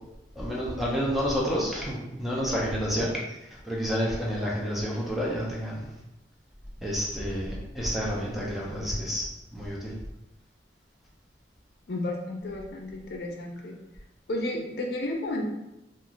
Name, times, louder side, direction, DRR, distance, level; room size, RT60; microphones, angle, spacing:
voice 1, 0.4-3.1 3.7-5.8 6.8-9.2 9.5-9.9, equal, ahead, -4 dB, 0.5 m, -29 dB
voice 2, 11.9-13.7 14.3-15.4, left 1 dB, 65° left, 0 dB, 0.4 m, -32 dB
2.4 x 2.4 x 3.0 m, 0.91 s
head